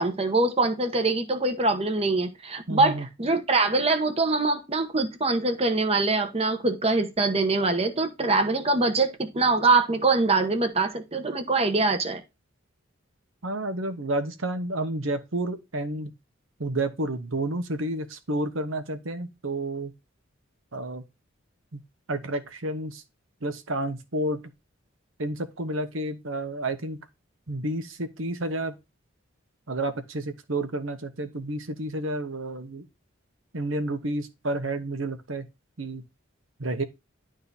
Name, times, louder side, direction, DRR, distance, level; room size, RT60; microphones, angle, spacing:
voice 1, 0.0-12.2, right 3 dB, 30° right, 1.0 m, -23 dB
voice 2, 2.7-3.1 13.4-16.1 16.6-19.9 20.7-21.0 21.7-21.8 22.1-23.0 23.4-24.4 25.2-27.1 27.5-28.8 29.7-32.9 33.5-35.5 35.8-36.0 36.6-36.8, right 1 dB, 80° right, 1.1 m, -30 dB
11.5 x 3.8 x 4.1 m
head